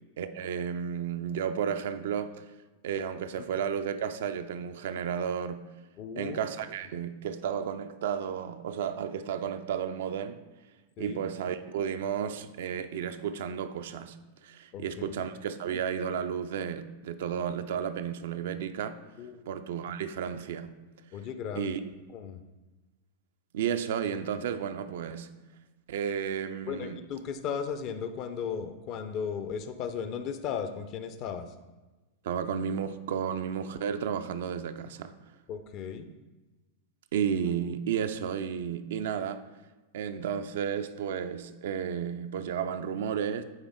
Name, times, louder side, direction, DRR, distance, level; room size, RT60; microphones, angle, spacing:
voice 1, 0.2-2.4 2.8-5.7 6.2-10.4 11.0-14.2 14.4-19.0 19.5-20.7 21.6-21.8 23.5-25.3 25.9-27.0 32.2-35.1 37.1-39.4 39.9-43.4, right 8 dB, 55° right, 0.3 m, -32 dB
voice 2, 6.0-6.4 11.0-11.2 14.7-15.1 19.2-19.4 21.1-21.8 22.1-22.4 26.7-31.5 35.5-36.1, left 7 dB, 40° left, 0.5 m, -36 dB
8.8 x 3.5 x 3.5 m
figure-of-eight pair, 90°, 0 cm